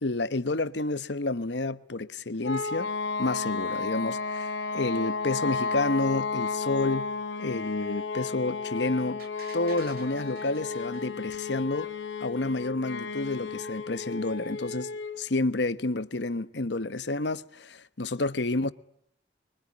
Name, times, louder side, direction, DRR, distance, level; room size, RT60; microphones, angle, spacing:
voice 1, 0.0-2.9 3.2-7.1 7.4-9.2 9.5-11.9 12.2-14.9 15.2-18.7, left 2 dB, 70° left, 1.1 m, -29 dB
sound 1, 2.4-15.2, left 4 dB, 85° left, 2.6 m, -33 dB
sound 2, 9.2-12.1 12.5-12.6, right 5 dB, 55° right, 2.9 m, -51 dB
26.0 x 23.0 x 9.8 m
head